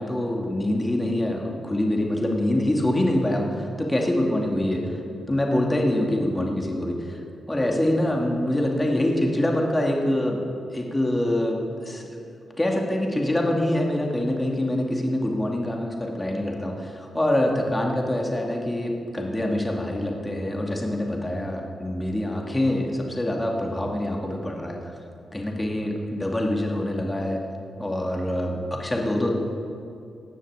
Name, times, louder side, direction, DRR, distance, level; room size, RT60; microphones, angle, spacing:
voice 1, 0.0-5.0 5.3-7.2 7.5-10.4 10.7-12.1 12.6-24.9 25.3-27.4 27.8-29.3, left 1 dB, 15° left, 0 dB, 2.6 m, -25 dB
18.5 x 6.4 x 8.1 m, 2.5 s
cardioid pair, 70°, 0 cm